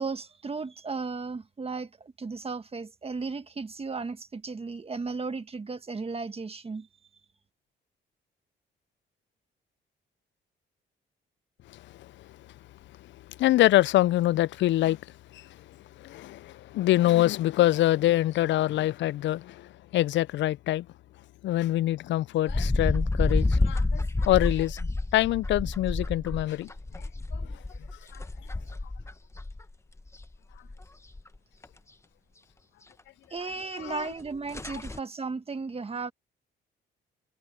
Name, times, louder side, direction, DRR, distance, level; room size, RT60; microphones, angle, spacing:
voice 1, 0.0-6.9 33.3-36.1, right 4 dB, 30° right, 1.6 m, -35 dB
voice 2, 11.7-12.5 13.3-20.9 21.4-27.6 28.1-28.2 33.7-34.1, left 15 dB, 65° left, 0.4 m, -26 dB
sound 1, 22.5-29.6 30.0-30.8 31.1-31.3 31.6-31.7 33.8-33.9 34.2-34.3 34.5-35.0, left 2 dB, 15° left, 1.1 m, -29 dB
cardioid pair, 90°, 20 cm